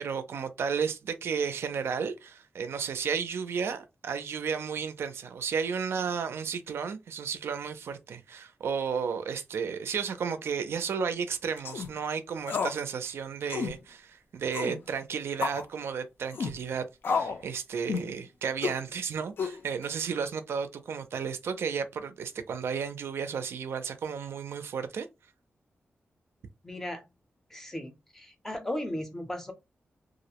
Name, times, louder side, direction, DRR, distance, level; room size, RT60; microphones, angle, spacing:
voice 1, 0.0-25.1, right 6 dB, 85° right, 0.4 m, -33 dB
sound 1, 11.6-11.9 12.5-12.8 13.1-13.2 13.5-13.8 14.5-14.8 15.4-15.6 16.3-16.6 17.0-17.4 17.9-18.1 18.6-18.8 19.4-19.9, left 5 dB, 65° left, 0.4 m, -31 dB
voice 2, 26.6-27.1 27.5-29.5, left 1 dB, 10° left, 0.5 m, -36 dB
2.4 x 2.0 x 2.8 m
wide cardioid pair, 170°, 4 cm